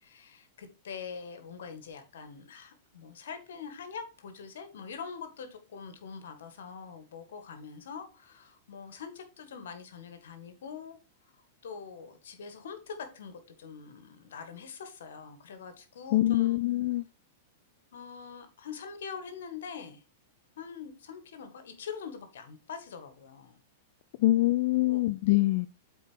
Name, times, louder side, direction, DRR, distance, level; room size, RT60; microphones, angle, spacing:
voice 1, 0.0-11.0 11.2-16.6 17.9-20.0 20.6-23.6 24.7-25.1, left 6 dB, 75° left, 1.7 m, -44 dB
voice 2, 16.1-17.0 24.2-25.7, left 17 dB, 55° left, 0.4 m, -24 dB
8.1 x 4.6 x 4.6 m
hypercardioid pair, 115°, 0 cm